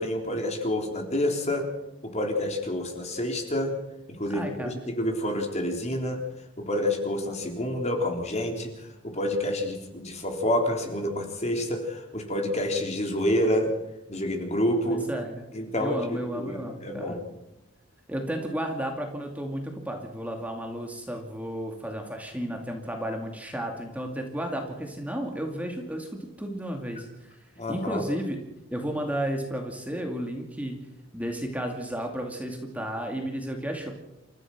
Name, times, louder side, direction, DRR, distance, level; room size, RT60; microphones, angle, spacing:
voice 1, 0.0-1.7 2.0-3.7 4.1-6.2 6.6-13.7 14.1-15.0 15.5-17.2 27.6-28.0, left 1 dB, 35° left, 3 dB, 3.6 m, -28 dB
voice 2, 4.3-4.7 14.9-15.5 15.8-17.2 18.1-26.1 26.4-27.4 27.7-28.4 28.7-30.8 31.1-33.9, right 1 dB, 5° right, 2 dB, 2.4 m, -33 dB
29.0 x 14.5 x 6.1 m, 0.90 s
head